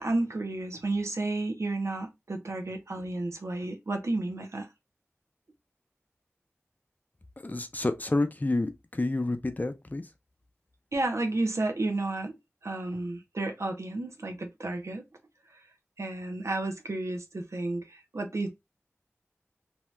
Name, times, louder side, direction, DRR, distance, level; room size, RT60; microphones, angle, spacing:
voice 1, 0.0-4.7 10.9-15.1 15.5-15.6 16.0-18.5, right 2 dB, 75° right, 0.6 m, -32 dB
voice 2, 7.4-10.1, left 2 dB, 35° left, 0.5 m, -29 dB
2.7 x 2.3 x 3.1 m
wide cardioid pair, 45°, 5 cm